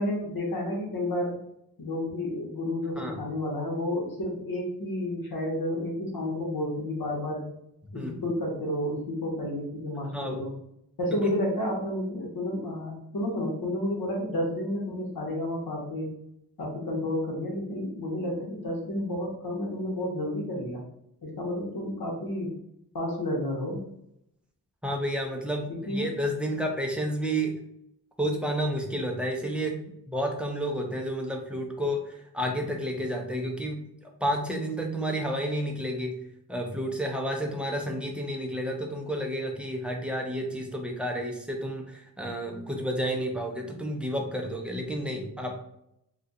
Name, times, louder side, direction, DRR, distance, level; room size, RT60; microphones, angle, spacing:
voice 1, 0.0-1.4 1.8-7.5 7.9-10.5 11.0-16.1 16.6-20.8 21.2-22.5 22.9-23.8 25.7-26.1, left 1 dB, 60° left, -2 dB, 1.0 m, -31 dB
voice 2, 10.1-10.4 11.2-11.3 24.8-27.6 28.2-36.2 36.5-45.6, equal, 5° right, 1 dB, 0.6 m, -31 dB
2.5 x 2.3 x 4.0 m, 0.76 s
wide cardioid pair, 65°, 40 cm